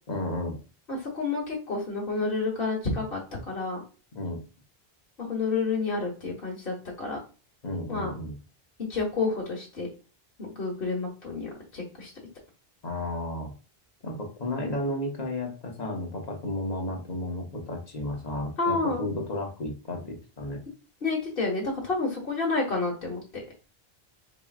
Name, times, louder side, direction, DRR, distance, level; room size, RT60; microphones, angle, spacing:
voice 1, 0.1-0.6 4.1-4.4 7.6-8.3 12.8-13.5 14.0-20.6, left 1 dB, 45° left, 0 dB, 1.2 m, -33 dB
voice 2, 0.9-3.2 3.5-3.8 5.2-7.2 7.9-8.1 8.9-9.9 10.4-12.1 18.6-19.0 21.0-23.4, left 3 dB, 60° left, -2 dB, 1.5 m, -29 dB
4.7 x 3.0 x 2.4 m, 0.34 s
omnidirectional pair, 1.0 m